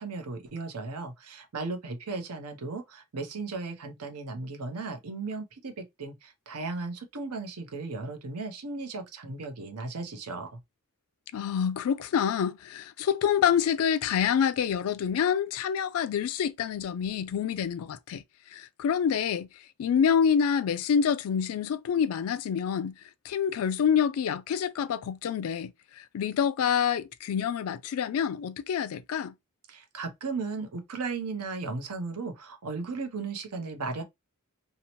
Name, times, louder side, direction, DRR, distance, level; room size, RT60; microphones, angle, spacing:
voice 1, 0.0-10.6 29.7-34.0, right 3 dB, 85° right, 0.7 m, -36 dB
voice 2, 11.3-18.2 18.5-19.5 19.8-22.9 23.2-29.3, left 7 dB, 70° left, 0.3 m, -27 dB
2.7 x 2.0 x 2.9 m
head